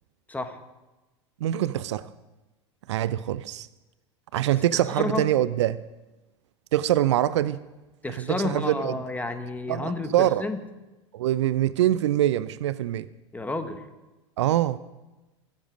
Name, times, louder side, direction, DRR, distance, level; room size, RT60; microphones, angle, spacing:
voice 1, 1.4-2.1 2.9-3.7 4.3-5.8 6.7-7.6 8.1-9.0 9.7-10.5 11.1-13.1 14.4-14.8, right 13 dB, 75° right, 0.5 m, -24 dB
voice 2, 4.7-5.3 8.0-10.6 13.3-13.8, left 2 dB, 10° left, 1.5 m, -31 dB
21.0 x 7.5 x 5.1 m
hypercardioid pair, 85°, 15 cm